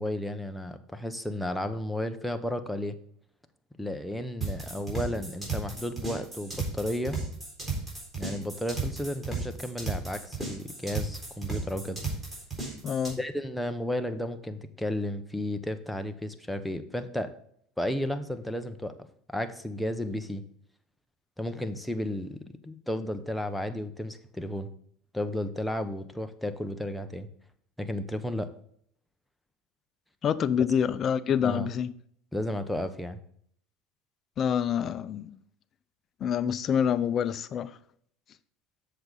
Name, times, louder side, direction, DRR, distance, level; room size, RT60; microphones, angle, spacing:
voice 1, 0.0-2.9 3.8-7.2 8.2-12.0 13.2-17.3 17.8-19.0 19.3-20.4 21.4-24.7 25.1-27.3 27.8-28.5 31.4-31.7 32.3-33.2, left 1 dB, ahead, 1.0 m, -33 dB
sound 1, 4.4-13.1, right 3 dB, 15° right, 3.9 m, -34 dB
voice 2, 12.8-13.2 30.2-31.9 34.4-35.4 36.2-37.8, left 8 dB, 40° left, 0.6 m, -27 dB
7.8 x 6.7 x 4.1 m
supercardioid pair, 100°, 0 cm